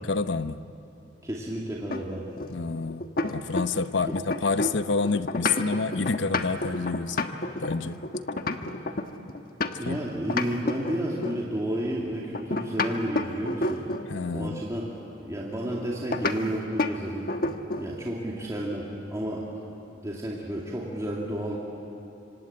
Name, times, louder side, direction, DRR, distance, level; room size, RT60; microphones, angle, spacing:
voice 1, 0.1-0.6 2.5-7.2 7.6-8.0 9.8-10.0 14.1-14.6, left 4 dB, 75° left, 12 dB, 0.8 m, -28 dB
voice 2, 1.2-2.2 4.1-4.2 9.8-13.8 14.3-14.9 15.2-17.3 17.8-19.5 20.0-21.6, right 1 dB, 20° right, -4 dB, 2.5 m, -31 dB
sound 1, 1.9-3.9 4.2-10.0 10.3-11.5 12.3-14.1 16.1-16.4 16.8-17.0 17.3-17.9, left 2 dB, 50° left, 1.3 m, -29 dB
26.5 x 25.5 x 8.9 m, 2.8 s
head